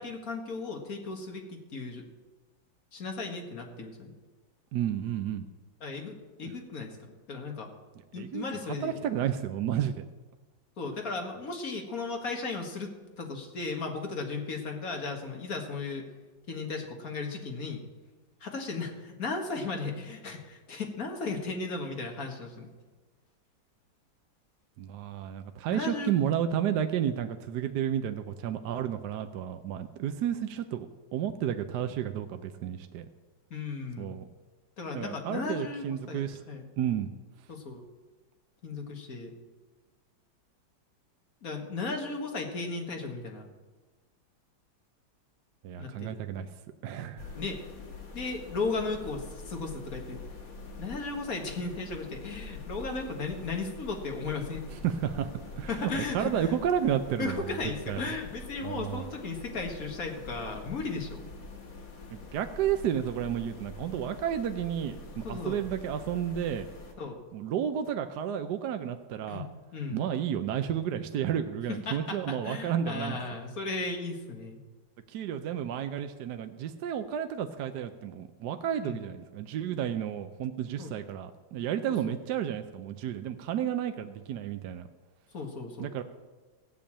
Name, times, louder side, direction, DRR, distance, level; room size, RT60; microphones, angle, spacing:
voice 1, 0.0-2.0 2.9-4.1 5.8-7.7 8.1-9.0 10.8-12.9 13.2-16.1 16.5-17.8 18.4-22.7 25.7-26.1 33.5-34.1 34.8-36.6 37.5-37.8 38.6-39.3 41.4-43.5 45.8-46.1 47.4-47.6 48.1-50.2 50.8-54.6 55.7-56.6 57.2-61.3 65.2-65.6 67.0-67.2 69.3-69.4 69.7-70.0 71.7-74.6 78.8-79.0 80.8-80.9 81.9-82.2 85.3-85.9, left 3 dB, 50° left, 3 dB, 2.0 m, -36 dB
voice 2, 4.7-5.5 8.1-8.4 8.8-10.0 24.8-30.9 31.1-33.0 34.0-34.3 34.9-36.4 36.8-37.1 45.6-46.5 46.8-47.3 54.7-57.4 57.9-58.0 58.6-59.0 62.1-66.7 67.3-69.5 69.9-73.2 75.1-84.9 85.8-86.0, right 9 dB, 70° right, 8 dB, 1.2 m, -31 dB
sound 1, 47.2-66.9, left 3 dB, 85° left, 2.7 m, -45 dB
15.5 x 7.0 x 8.8 m, 1.3 s
omnidirectional pair, 2.0 m